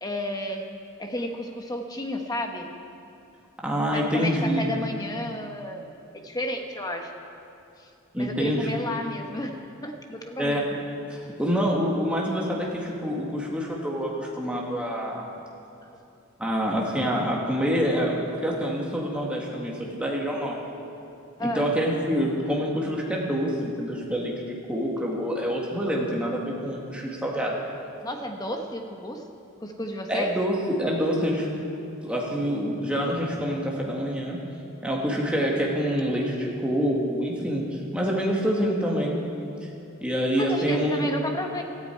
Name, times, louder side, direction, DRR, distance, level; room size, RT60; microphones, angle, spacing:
voice 1, 0.0-0.7 1.0-2.7 3.9-5.9 6.1-7.2 7.8-7.9 8.1-10.6 21.4-21.7 28.0-29.2 29.6-30.3 40.4-41.6, left 1 dB, 20° left, 3 dB, 1.2 m, -32 dB
voice 2, 3.6-4.6 8.1-8.7 10.4-10.6 11.1-15.3 16.4-20.6 21.4-27.6 30.1-31.5 32.0-34.4 34.8-39.2 39.6-39.7 40.0-41.1, equal, 5° right, -3 dB, 2.0 m, -26 dB
17.5 x 13.5 x 4.6 m, 2.8 s
head